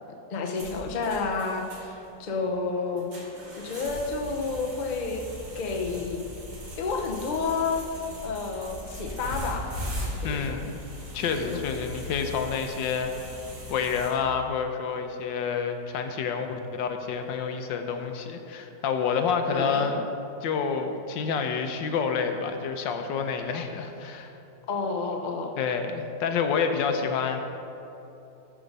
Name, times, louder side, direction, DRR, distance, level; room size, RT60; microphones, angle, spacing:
voice 1, 0.3-3.1 3.6-5.2 5.5-6.3 6.8-7.9 8.2-9.7 10.2-10.6 11.4-11.7 19.5-19.9 24.7-25.5, left 4 dB, 45° left, 2 dB, 0.5 m, -30 dB
sound 1, 0.5-14.1, left 1 dB, 80° right, 2.9 m, -39 dB
voice 2, 10.2-10.8 11.1-13.4 13.7-16.5 16.8-20.0 20.4-24.3 25.6-27.4, left 6 dB, 80° left, 6 dB, 1.4 m, -28 dB
13.5 x 5.0 x 5.3 m, 3.0 s
omnidirectional pair, 2.0 m